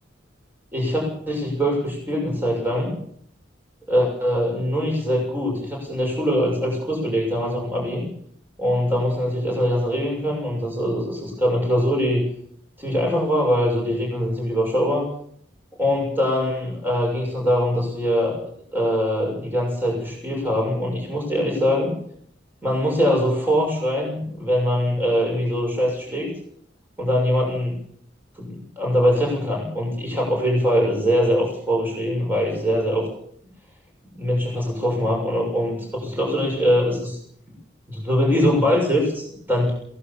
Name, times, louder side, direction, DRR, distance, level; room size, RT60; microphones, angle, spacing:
voice 1, 0.7-3.0 3.9-8.0 8.6-12.3 12.8-15.0 15.8-18.3 18.7-21.9 22.6-26.3 27.0-27.7 28.4-33.1 34.2-37.2 37.9-39.7, equal, 10° right, -1 dB, 6.9 m, -22 dB
22.5 x 18.0 x 7.1 m, 0.65 s
head